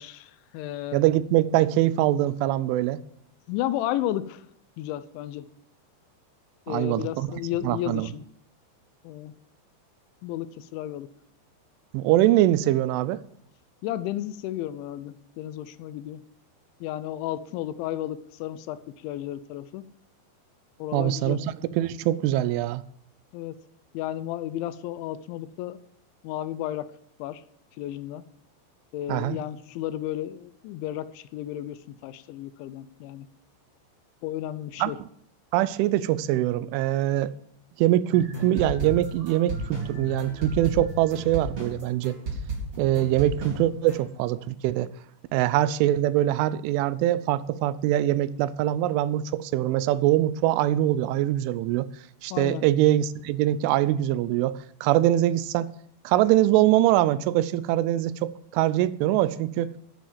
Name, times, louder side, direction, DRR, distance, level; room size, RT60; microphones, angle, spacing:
voice 1, 0.0-1.0 3.5-4.4 4.8-5.5 6.7-8.3 9.0-9.3 10.2-11.1 13.8-16.2 16.8-18.8 19.0-19.8 20.8-21.4 23.3-23.6 23.9-25.8 26.2-26.9 27.2-27.4 27.8-28.2 28.9-33.3 34.2-35.0 52.3-52.7, left 13 dB, 80° left, 3.0 m, -33 dB
voice 2, 0.9-3.0 6.7-7.3 7.6-8.1 11.9-13.2 20.9-22.8 29.1-29.4 34.8-34.9 35.5-37.3 37.8-42.2 42.8-44.9 45.3-51.9 52.2-55.7 56.0-59.7, right 14 dB, 85° right, 3.1 m, -23 dB
sound 1, 38.1-44.0, right 2 dB, 30° right, 5.0 m, -33 dB
10.5 x 10.0 x 7.4 m
omnidirectional pair, 5.5 m